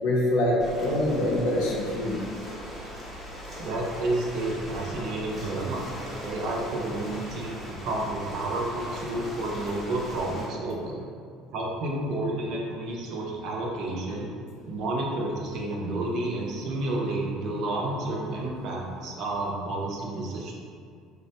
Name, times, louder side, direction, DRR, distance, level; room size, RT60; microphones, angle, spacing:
voice 1, 0.0-2.2, left 1 dB, 75° left, -3 dB, 0.6 m, -24 dB
Ocean, 0.6-10.4, equal, 10° left, 0.6 m, -39 dB
voice 2, 3.6-5.9 6.2-11.0 11.5-14.3 14.7-20.5, right 2 dB, 50° right, -1 dB, 0.5 m, -30 dB
3.8 x 2.1 x 2.7 m, 2.3 s
cardioid pair, 170°, 0 cm